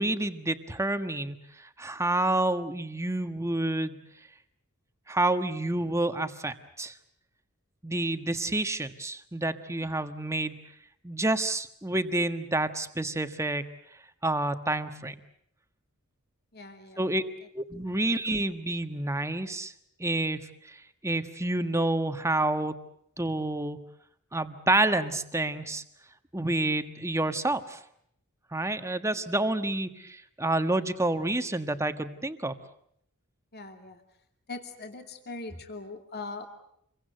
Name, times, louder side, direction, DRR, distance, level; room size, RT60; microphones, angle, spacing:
voice 1, 0.0-1.4 1.8-4.0 5.1-6.9 7.8-10.6 11.0-13.6 14.2-15.1 17.0-17.2 17.5-19.7 20.0-20.4 20.6-20.7 21.0-22.8 23.2-23.8 24.3-25.8 26.3-27.8 28.5-32.5, right 2 dB, 15° right, 9 dB, 1.5 m, -28 dB
voice 2, 16.5-17.2 17.9-18.0 33.5-34.0 34.5-36.5, left 3 dB, 50° left, 5 dB, 2.6 m, -41 dB
28.0 x 23.0 x 7.9 m, 0.70 s
head